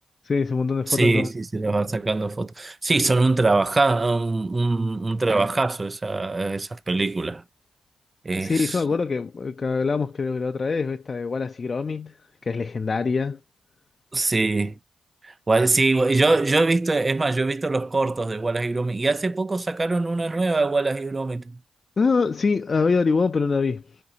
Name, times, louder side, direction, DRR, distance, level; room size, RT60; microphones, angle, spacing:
voice 1, 0.2-1.3 8.4-12.2 12.4-13.4 22.0-24.0, left 4 dB, 45° left, 0.4 m, -24 dB
voice 2, 0.9-7.4 8.2-8.8 14.1-14.8 15.2-21.6, right 3 dB, 30° right, 0.4 m, -23 dB
5.1 x 2.8 x 2.7 m
supercardioid pair, 55°, 0 cm